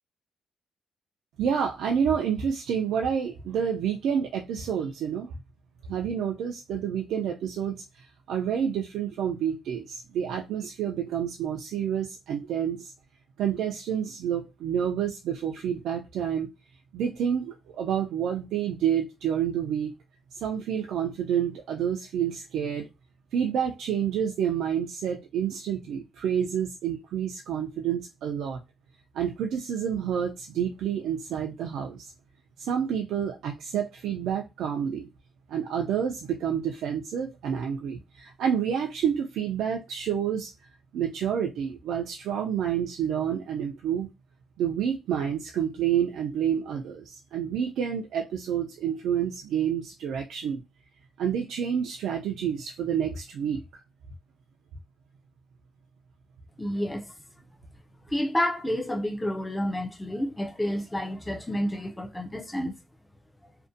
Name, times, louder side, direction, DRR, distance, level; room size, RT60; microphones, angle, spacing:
voice 1, 1.4-5.3 5.9-12.9 13.4-16.5 16.9-19.9 20.3-22.9 23.3-28.6 29.1-32.1 32.6-35.1 35.5-40.5 40.9-44.1 44.6-50.6 51.2-53.6, right 8 dB, 85° right, 0.3 m, -29 dB
voice 2, 56.6-57.1 58.1-62.7, equal, 10° left, 0.4 m, -29 dB
2.5 x 2.1 x 2.5 m
cardioid pair, 105°, 0 cm